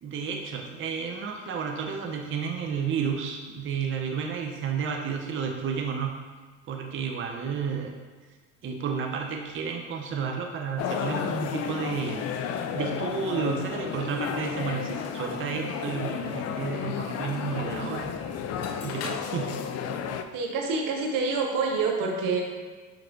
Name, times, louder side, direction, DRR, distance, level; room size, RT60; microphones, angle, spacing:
voice 1, 0.0-6.2 6.7-8.0 8.6-12.3 12.7-18.1 18.8-19.5, right 6 dB, 35° right, 1 dB, 0.6 m, -31 dB
sound 1, 10.8-20.2, left 7 dB, 45° left, 0.4 m, -32 dB
voice 2, 20.3-22.4, right 4 dB, 65° right, 1 dB, 0.7 m, -27 dB
5.7 x 3.0 x 2.5 m, 1.5 s
hypercardioid pair, 55°, 35 cm